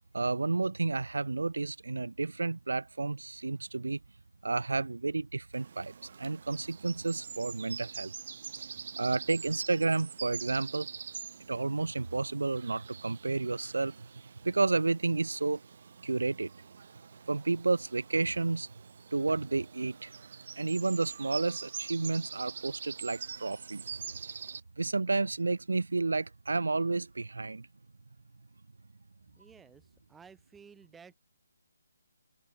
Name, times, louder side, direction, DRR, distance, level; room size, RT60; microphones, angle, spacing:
voice 1, 0.1-4.0 4.4-5.9 6.2-8.1 9.0-10.9 11.5-14.0 14.4-15.6 16.0-16.5 17.3-18.7 19.1-20.1 20.6-24.0 24.8-27.7, right 3 dB, 85° right, 1.7 m, -31 dB
sound 1, 5.5-24.6, right 6 dB, 45° right, 5.1 m, -45 dB
voice 2, 29.4-31.2, right 6 dB, 5° right, 4.0 m, -55 dB
hypercardioid pair, 165°, 0 cm